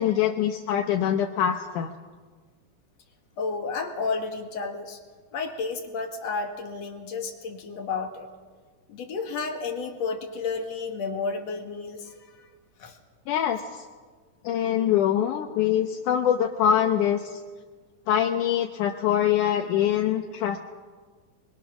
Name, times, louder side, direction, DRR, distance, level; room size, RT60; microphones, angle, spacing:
voice 1, 0.0-1.9 13.3-13.9 14.4-17.4 18.1-20.6, left 10 dB, 75° left, 4 dB, 2.4 m, -24 dB
voice 2, 3.4-5.0 5.3-8.3 8.9-12.5 12.8-13.0, left 4 dB, 55° left, 4 dB, 2.8 m, -32 dB
24.5 x 22.5 x 6.2 m, 1.4 s
omnidirectional pair, 3.8 m